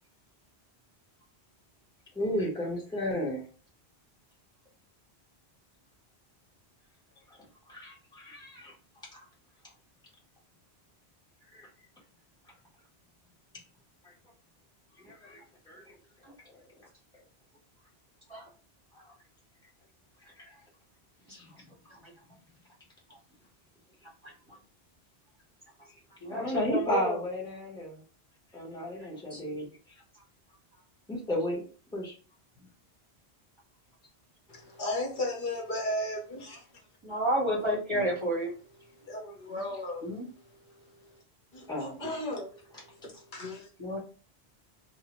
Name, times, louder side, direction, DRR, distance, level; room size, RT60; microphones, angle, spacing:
voice 1, 2.1-3.5 7.3-7.4 7.7-8.7 9.1-9.3 11.5-11.7 14.0-14.1 15.0-15.4 15.7-15.9 16.5-16.6 18.9-19.1 20.2-20.5 21.3-21.5 25.9-26.0 26.3-28.0 28.5-29.7 31.1-31.6 31.9-32.1 37.9-38.1 41.7-42.0, left 1 dB, 5° left, 0.8 m, -34 dB
voice 2, 26.2-27.2 29.3-29.4 37.0-38.5 40.0-40.2 43.8-44.0, right 1 dB, 30° right, 0.9 m, -30 dB
voice 3, 34.5-36.8 38.8-41.2 41.5-43.7, left 1 dB, 50° left, 0.9 m, -36 dB
2.7 x 2.1 x 2.9 m
omnidirectional pair, 1.1 m